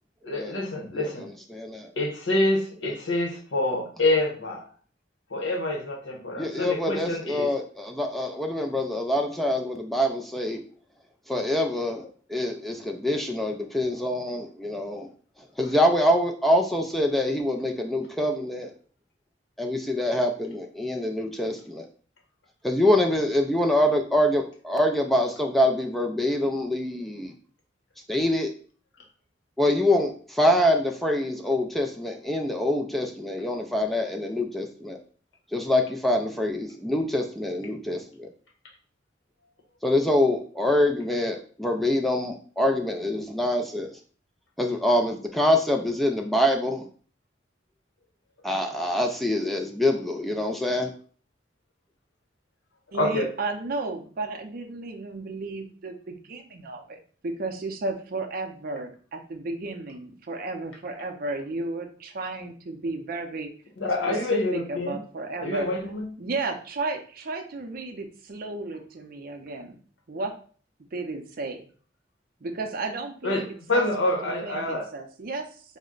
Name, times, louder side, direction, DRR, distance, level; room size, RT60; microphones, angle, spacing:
voice 1, 0.2-1.3 2.0-4.6 5.3-7.5 52.9-53.3 63.8-65.0 65.4-66.1 73.2-74.9, left 2 dB, 80° left, 1 dB, 1.0 m, -27 dB
voice 2, 1.5-1.9 6.4-10.6 11.3-15.1 15.6-18.7 19.6-21.9 22.6-27.3 28.1-28.5 29.6-35.0 35.5-38.3 39.8-43.9 44.6-46.9 48.4-50.9, left 1 dB, ahead, 2 dB, 0.3 m, -25 dB
voice 3, 52.9-63.5 64.3-65.7 66.2-69.8 70.1-70.3 70.9-71.7 72.4-75.5, right 3 dB, 50° right, 5 dB, 0.5 m, -33 dB
4.2 x 2.1 x 3.7 m, 0.43 s
head